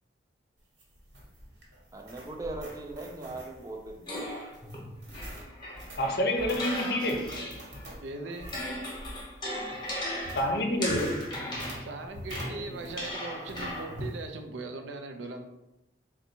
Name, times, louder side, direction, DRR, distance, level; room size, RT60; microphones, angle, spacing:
sound 1, 0.6-13.2 13.5-14.2, equal, 65° right, 1.2 m, -45 dB
voice 1, 1.9-4.4 9.7-9.8, right 2 dB, 20° right, 1 dB, 0.4 m, -39 dB
sound 2, 4.1-7.9 8.2-14.1, left 1 dB, 25° left, 0.9 m, -38 dB
voice 2, 6.0-7.4 10.4-11.3, left 1 dB, 55° left, 3 dB, 0.6 m, -28 dB
voice 3, 8.0-8.5 11.8-15.4, right 3 dB, 85° right, 6 dB, 0.5 m, -39 dB
3.9 x 2.2 x 4.4 m, 0.95 s
head